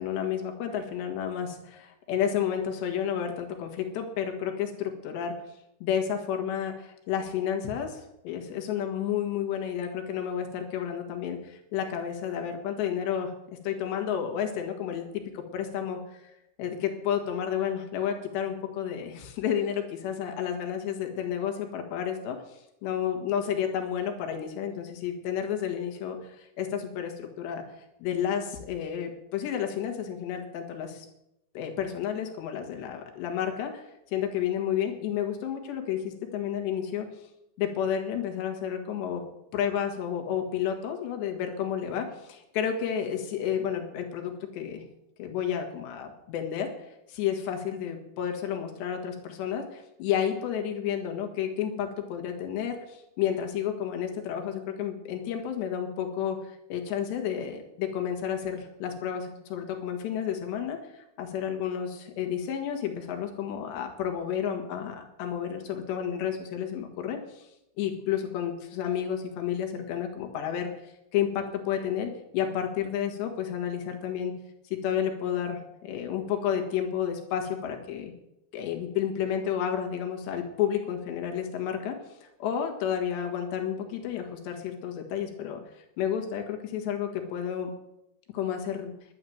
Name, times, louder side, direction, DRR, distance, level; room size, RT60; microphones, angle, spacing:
voice 1, 0.0-5.3 5.8-13.3 13.6-16.3 16.6-27.6 28.0-31.1 31.6-37.1 37.6-39.2 39.5-44.8 45.2-46.7 47.1-67.5 67.8-74.3 74.8-78.1 78.5-85.6 86.0-87.7 88.3-88.9, left 9 dB, 70° left, 3 dB, 3.6 m, -31 dB
11.5 x 9.3 x 7.8 m, 0.84 s
omnidirectional pair, 5.6 m